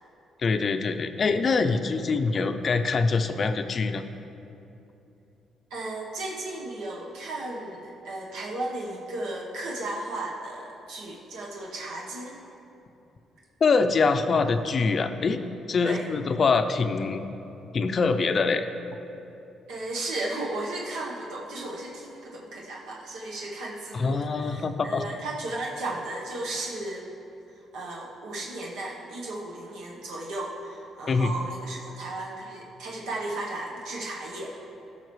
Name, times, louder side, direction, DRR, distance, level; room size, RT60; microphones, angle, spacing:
voice 1, 0.4-4.0 13.6-15.4 15.7-17.2 17.7-18.7 23.9-25.1 31.1-31.3, left 4 dB, 45° left, 8 dB, 0.5 m, -24 dB
voice 2, 5.7-12.4 14.4-14.6 15.8-16.0 19.7-27.1 27.7-34.6, right 2 dB, 90° right, -3 dB, 1.1 m, -35 dB
14.0 x 5.6 x 3.2 m, 2.8 s
cardioid pair, 90°, 0 cm